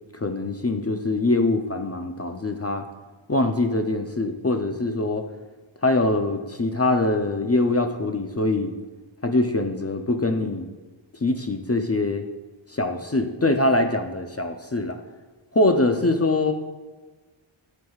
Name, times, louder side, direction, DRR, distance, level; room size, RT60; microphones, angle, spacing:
voice 1, 0.1-2.9 3.3-5.3 5.8-8.7 9.2-10.7 11.2-12.3 12.7-15.0 15.5-16.5, left 2 dB, 30° left, 5 dB, 0.5 m, -23 dB
13.0 x 4.7 x 2.4 m, 1.3 s
wide cardioid pair, 45°, 48 cm